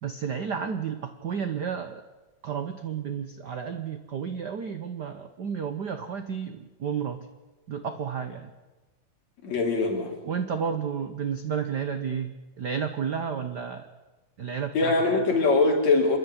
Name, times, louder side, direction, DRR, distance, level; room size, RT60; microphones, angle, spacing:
voice 1, 0.0-2.0 2.4-7.2 7.7-8.5 10.2-13.9 14.4-15.2, right 7 dB, 65° right, 8 dB, 1.0 m, -32 dB
voice 2, 9.4-10.1 14.7-16.2, left 3 dB, 65° left, 1 dB, 4.3 m, -22 dB
27.5 x 11.5 x 9.7 m, 1.2 s
omnidirectional pair, 3.4 m